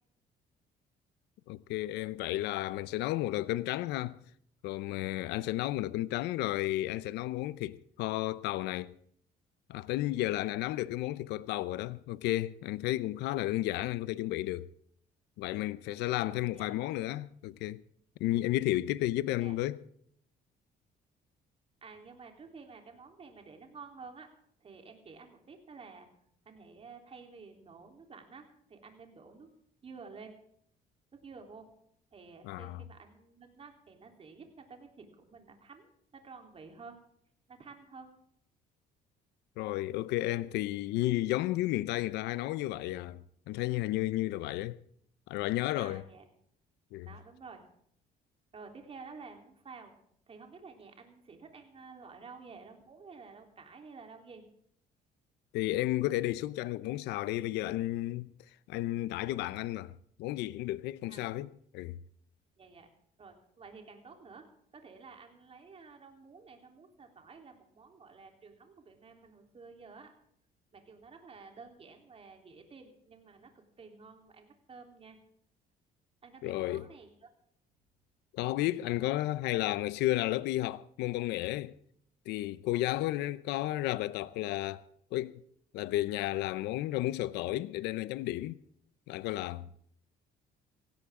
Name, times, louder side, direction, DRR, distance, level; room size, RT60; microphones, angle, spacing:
voice 1, 1.5-4.2 4.6-8.9 9.7-14.7 15.4-17.8 18.2-19.8 32.5-32.8 39.6-44.8 45.3-46.0 46.9-47.1 55.5-58.3 58.7-59.9 60.2-61.5 61.7-62.0 76.4-76.9 78.3-81.7 82.3-84.8 85.1-85.3 85.7-88.6 89.1-89.7, left 16 dB, 90° left, 0.7 m, -32 dB
voice 2, 16.2-17.0 19.4-19.5 21.8-24.3 24.6-26.1 26.5-29.5 29.8-30.3 31.1-31.7 32.1-37.0 37.5-38.1 45.7-46.3 47.0-47.6 48.5-50.0 50.3-54.4 61.1-61.4 62.6-62.9 63.2-70.1 70.7-75.2 76.2-77.3, right 4 dB, 35° right, 3.6 m, -51 dB
18.0 x 16.0 x 3.7 m
cardioid pair, 110°, 17 cm